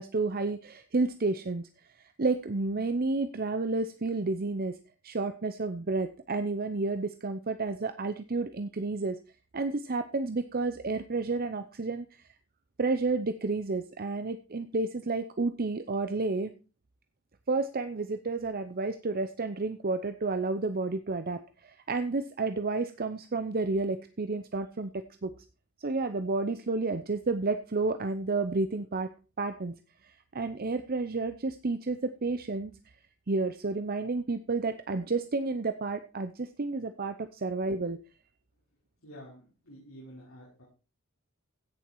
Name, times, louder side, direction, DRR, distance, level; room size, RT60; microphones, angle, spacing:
voice 1, 0.0-1.7 2.2-4.8 5.0-9.2 9.5-12.0 12.8-16.5 17.5-25.3 25.8-29.1 29.4-29.7 30.0-32.7 33.3-38.0, right 3 dB, 45° right, 10 dB, 0.7 m, -31 dB
voice 2, 39.0-40.6, equal, 75° left, -7 dB, 5.6 m, -49 dB
16.0 x 7.1 x 4.7 m, 0.33 s
head